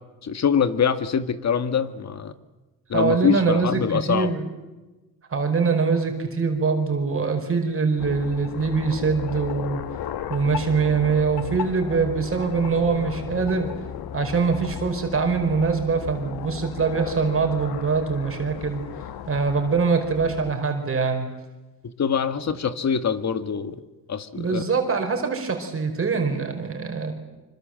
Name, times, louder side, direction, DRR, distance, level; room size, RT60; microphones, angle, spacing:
voice 1, 0.2-2.3 2.9-4.3 22.0-23.8 24.1-24.6, left 7 dB, 45° left, 11 dB, 1.9 m, -24 dB
voice 2, 2.9-4.4 5.3-9.8 10.3-13.7 14.1-18.8 19.3-21.3 24.3-27.1, right 5 dB, 35° right, 4 dB, 4.6 m, -23 dB
sound 1, 8.0-20.6, left 9 dB, 75° left, 1.7 m, -35 dB
26.0 x 25.5 x 7.8 m, 1.2 s
cardioid pair, 95°, 37 cm